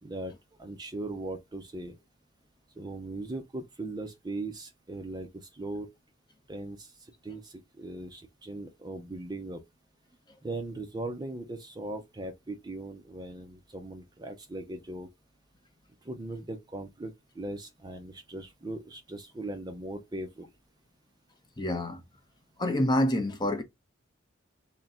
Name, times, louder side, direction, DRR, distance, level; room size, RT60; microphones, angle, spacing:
voice 1, 0.0-2.0 2.8-5.9 6.5-9.6 10.4-15.1 16.0-20.5, right 2 dB, 20° right, 0.5 m, -39 dB
voice 2, 21.6-22.0 22.6-23.6, left 1 dB, 20° left, 0.6 m, -27 dB
3.7 x 2.2 x 4.1 m
head